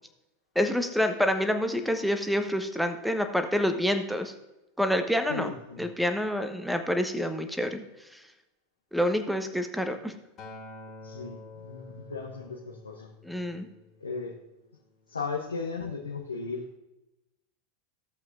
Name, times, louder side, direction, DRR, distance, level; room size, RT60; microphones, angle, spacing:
voice 1, 0.5-4.3 4.8-5.5 5.8-8.2 8.9-10.2 13.2-13.7, equal, ahead, 7 dB, 1.1 m, -27 dB
voice 2, 5.3-5.8 11.0-13.1 14.0-14.3 15.1-16.7, left 4 dB, 80° left, 1 dB, 1.0 m, -36 dB
Acoustic guitar, 10.4-14.7 15.5-15.6, left 3 dB, 35° left, 2.3 m, -48 dB
14.5 x 7.8 x 2.6 m, 0.98 s
figure-of-eight pair, 85°, 0 cm